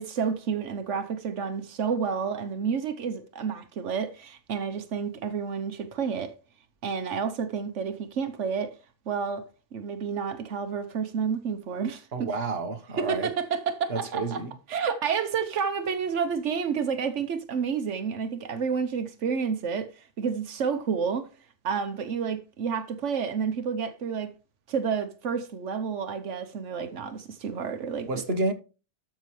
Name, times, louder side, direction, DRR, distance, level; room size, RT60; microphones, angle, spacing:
voice 1, 0.0-6.3 6.8-8.8 9.1-9.5 9.7-12.3 13.0-14.4 14.7-21.3 21.6-24.3 24.7-28.1, right 6 dB, 90° right, 1.3 m, -30 dB
voice 2, 12.1-13.3 13.9-14.5 28.0-28.5, right 3 dB, 60° right, 1.6 m, -29 dB
13.0 x 6.2 x 3.2 m
omnidirectional pair, 1.2 m